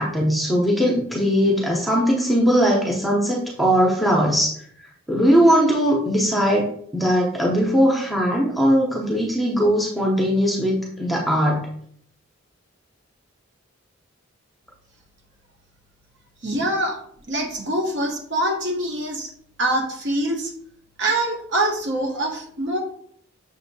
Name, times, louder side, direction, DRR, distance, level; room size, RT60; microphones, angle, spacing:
voice 1, 0.0-4.5 5.1-11.7 16.5-16.6, equal, ahead, -3 dB, 0.7 m, -20 dB
voice 2, 16.4-17.0 17.3-19.3 19.6-20.5 21.0-22.8, right 1 dB, 55° right, 1 dB, 1.0 m, -24 dB
6.5 x 2.7 x 2.7 m, 0.63 s
head